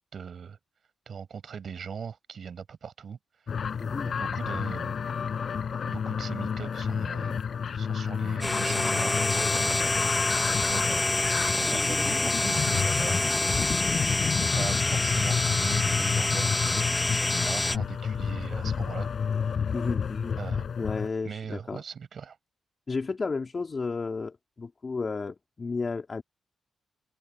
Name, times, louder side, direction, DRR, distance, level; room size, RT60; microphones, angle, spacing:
voice 1, 0.1-0.6 1.1-3.2 4.2-4.9 5.9-7.4 7.7-9.9 10.7-11.0 11.5-13.9 14.4-19.1 20.4-20.7 21.2-22.4, right 6 dB, 55° right, 7.3 m, -40 dB
sound 1, 3.5-21.1, left 6 dB, 55° left, 5.5 m, -30 dB
voice 2, 3.8-4.2 19.7-20.4 20.8-21.8 22.9-26.2, left 4 dB, 35° left, 3.7 m, -32 dB
sound 2, 8.4-17.8, left 2 dB, 15° left, 1.2 m, -27 dB
open air
cardioid pair, 95°, 0 cm